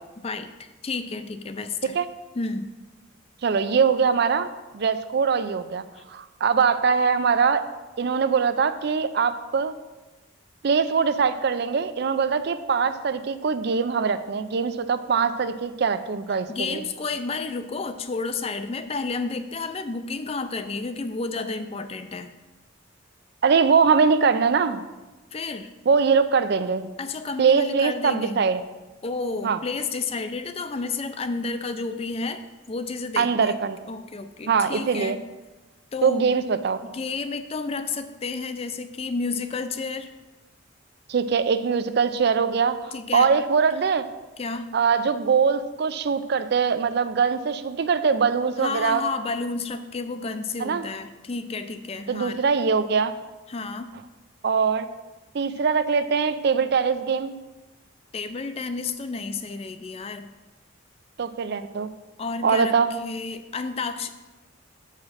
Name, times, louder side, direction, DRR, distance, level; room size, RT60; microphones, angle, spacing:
voice 1, 0.2-2.0 2.3-2.7 16.5-22.3 25.3-25.7 27.0-28.4 29.0-33.5 33.9-35.2 35.9-36.3 36.9-40.1 42.9-43.3 44.4-44.7 48.6-52.4 53.5-53.9 58.1-60.3 62.2-62.7 63.0-64.1, left 4 dB, 30° left, 9 dB, 0.4 m, -31 dB
voice 2, 3.4-7.7 8.0-9.7 10.6-16.8 23.4-24.8 25.9-26.9 27.4-28.6 29.4-29.6 33.2-33.8 34.5-35.2 36.0-36.8 41.1-44.0 44.7-49.0 50.6-50.9 52.1-53.1 54.4-54.9 55.3-57.4 61.2-61.9 62.4-62.9, right 5 dB, 50° right, 12 dB, 0.4 m, -22 dB
7.4 x 4.9 x 5.6 m, 1.1 s
head